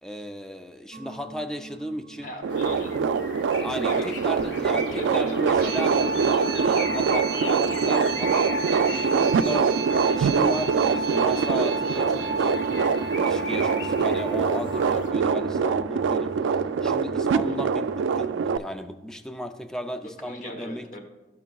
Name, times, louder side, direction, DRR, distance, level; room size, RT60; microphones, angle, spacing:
voice 1, 0.0-2.3 3.6-6.0 6.5-9.7 10.0-12.7 13.2-20.9, equal, 5° left, 7 dB, 0.3 m, -35 dB
sound 1, 0.9-18.8, right 3 dB, 55° right, 0.6 m, -34 dB
voice 2, 2.2-2.9 3.9-4.1 4.9-5.6 17.5-17.6 20.2-21.0, left 1 dB, 40° left, 3 dB, 1.0 m, -38 dB
sound 2, 2.4-18.6, right 5 dB, 90° right, 0.3 m, -24 dB
sound 3, 2.5-15.1, left 2 dB, 80° left, 0.7 m, -39 dB
13.0 x 5.8 x 2.3 m, 1.1 s
head